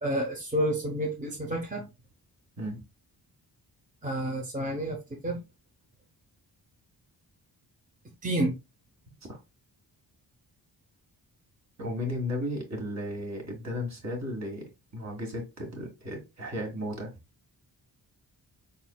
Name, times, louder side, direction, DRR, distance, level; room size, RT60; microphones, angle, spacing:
voice 1, 0.0-1.8 4.0-5.0 5.2-5.4 8.2-8.5, right 1 dB, 20° right, 0 dB, 0.9 m, -29 dB
voice 2, 11.8-14.6 14.9-17.1, left 1 dB, 40° right, 1 dB, 1.8 m, -34 dB
4.2 x 4.1 x 2.3 m, 0.25 s
wide cardioid pair, 105°, 41 cm